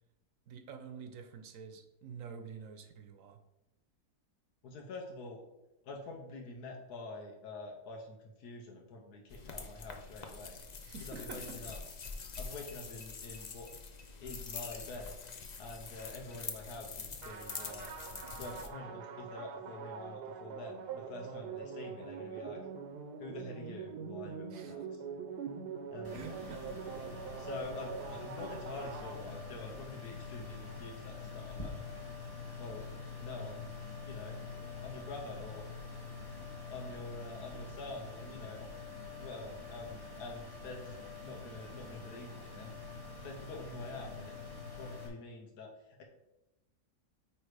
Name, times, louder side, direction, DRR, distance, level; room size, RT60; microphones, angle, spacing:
voice 1, 0.5-3.4 10.8-11.6 24.5-24.8 26.1-26.8, right 5 dB, 60° right, 7 dB, 1.1 m, -48 dB
voice 2, 4.6-5.4 5.8-10.6 11.0-11.8 12.4-13.7 14.2-15.1 15.6-17.9 18.4-22.6 23.2-25.0 25.9-26.2 27.3-31.8 32.6-32.9 33.2-33.7 34.1-34.4 34.8-35.6 36.7-38.7 39.1-40.9 41.2-42.8 43.2-44.3 44.8-46.0, left 3 dB, 75° left, 0 dB, 1.5 m, -46 dB
sound 1, 9.3-18.7, left 4 dB, 50° left, 0.5 m, -45 dB
sound 2, 17.2-29.8, right 6 dB, 85° right, 1.3 m, -44 dB
Quiet Computer Fan, 26.0-45.1, left 4 dB, 15° left, 1.5 m, -46 dB
8.8 x 3.3 x 4.8 m, 0.93 s
omnidirectional pair, 1.7 m